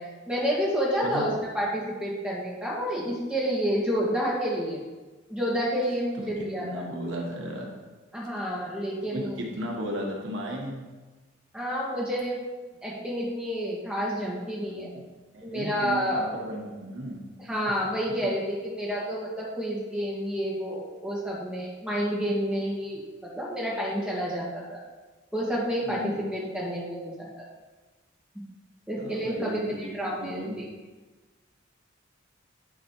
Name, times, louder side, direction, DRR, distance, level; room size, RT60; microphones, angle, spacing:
voice 1, 0.0-4.8 5.3-6.8 8.1-9.4 11.5-12.5 12.8-14.9 15.4-16.3 17.5-23.0 23.3-24.8 25.3-27.4 28.9-30.6, equal, 5° right, -5 dB, 1.7 m, -29 dB
voice 2, 1.0-1.3 6.2-7.8 9.1-10.8 14.6-15.0 15.3-17.2 25.8-26.7 29.0-30.6, equal, 70° right, 0 dB, 1.4 m, -35 dB
10.0 x 4.2 x 4.6 m, 1.2 s
head